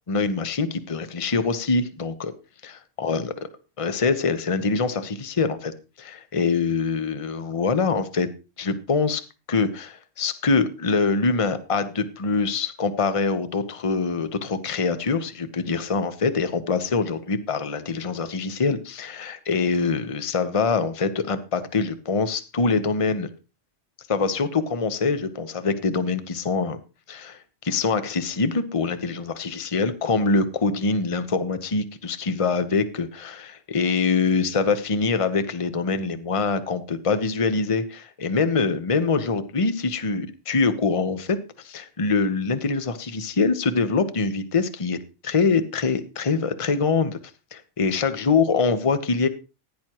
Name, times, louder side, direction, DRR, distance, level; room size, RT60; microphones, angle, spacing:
voice 1, 0.1-2.3 2.6-3.3 3.8-8.3 8.6-9.2 9.5-23.3 24.1-26.8 27.1-27.4 27.6-45.0 45.2-47.2 47.5-49.3, left 4 dB, 30° left, 11 dB, 0.9 m, -24 dB
15.5 x 10.5 x 3.0 m, 0.30 s
omnidirectional pair, 1.3 m